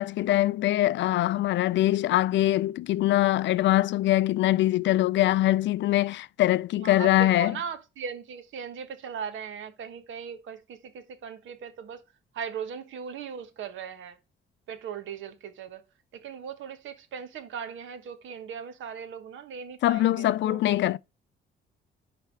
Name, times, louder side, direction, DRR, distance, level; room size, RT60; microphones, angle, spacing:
voice 1, 0.0-7.5 19.8-21.0, left 15 dB, 70° left, 0.4 m, -23 dB
voice 2, 6.8-12.0 12.3-14.2 14.7-15.8 16.1-21.0, right 7 dB, 75° right, 1.2 m, -38 dB
10.5 x 3.5 x 4.6 m
cardioid pair, 90°, 20 cm